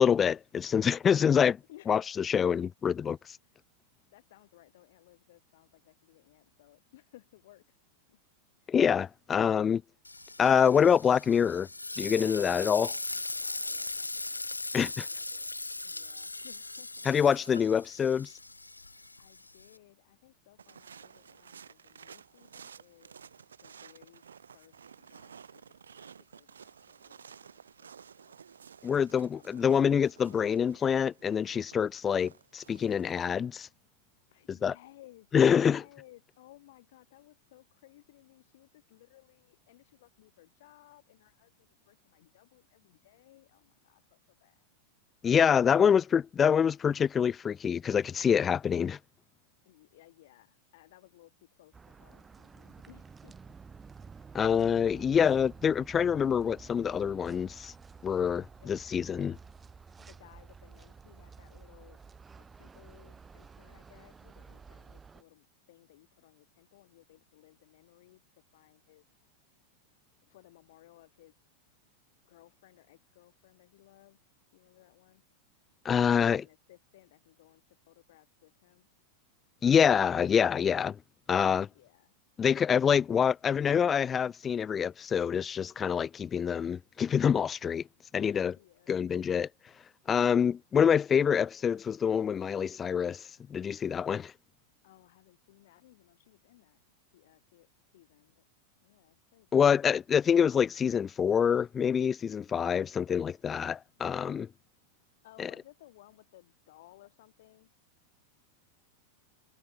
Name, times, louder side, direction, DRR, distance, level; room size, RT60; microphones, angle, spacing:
voice 1, 0.0-1.6 1.9-2.0 2.3-3.2 8.7-9.8 10.4-11.7 12.0-12.9 14.7-15.1 17.1-18.3 28.8-33.7 34.6-34.7 35.3-35.8 45.2-49.0 54.3-57.7 58.0-59.4 75.9-76.4 79.6-81.0 81.3-81.7 82.4-87.8 88.1-88.5 88.9-89.5 90.1-93.2 93.5-94.3 99.5-104.5, left 7 dB, 20° left, 0.3 m, -26 dB
voice 2, 1.7-2.5 3.4-3.6 4.1-7.8 8.1-8.2 8.6-8.8 13.1-14.5 15.0-15.5 15.8-17.1 19.2-23.1 23.6-24.2 24.5-28.4 29.3-29.6 30.0-30.6 34.3-44.6 49.6-53.6 54.1-54.4 54.8-55.4 58.6-58.8 60.0-62.0 62.4-69.0 70.2-71.3 72.2-74.2 74.5-75.2 76.1-78.9 81.7-82.1 88.2-89.0 94.8-96.8 97.1-98.4 98.8-99.6 105.2-107.7, left 16 dB, 55° left, 3.3 m, -60 dB
Frying (food), 10.0-19.8, left 2 dB, 80° left, 0.8 m, -39 dB
sound 1, 20.6-33.3, right 7 dB, 70° right, 0.8 m, -53 dB
sound 2, 51.7-65.2, right 5 dB, 15° right, 5.1 m, -51 dB
figure-of-eight pair, 90°, 0 cm